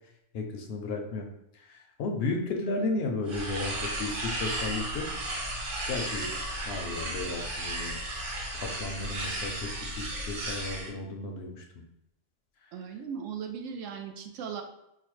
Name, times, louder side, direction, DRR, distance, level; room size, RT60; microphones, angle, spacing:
voice 1, 0.3-1.3 1.5-5.1 5.9-6.3 6.7-8.0 8.5-11.6, left 3 dB, 65° left, 2 dB, 0.7 m, -34 dB
sound 1, 3.3-10.9, right 1 dB, 50° right, 0.8 m, -34 dB
voice 2, 12.7-14.6, right 7 dB, 80° right, 4 dB, 0.9 m, -37 dB
4.7 x 2.1 x 3.0 m, 0.85 s
omnidirectional pair, 1.3 m